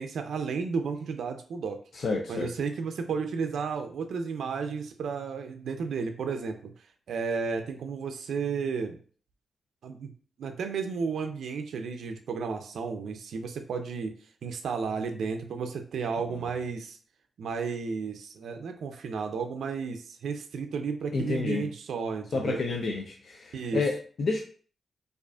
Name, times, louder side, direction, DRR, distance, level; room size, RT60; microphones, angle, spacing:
voice 1, 0.0-1.8 2.3-6.7 7.1-9.0 9.8-10.1 10.4-14.2 14.4-17.0 17.4-22.6 23.5-23.8, right 5 dB, 80° right, 6 dB, 0.4 m, -33 dB
voice 2, 1.9-2.5 16.3-16.4 21.1-21.7 22.3-24.4, left 3 dB, 60° left, 1 dB, 0.4 m, -30 dB
4.8 x 2.4 x 2.3 m, 0.43 s
wide cardioid pair, 125°, 0 cm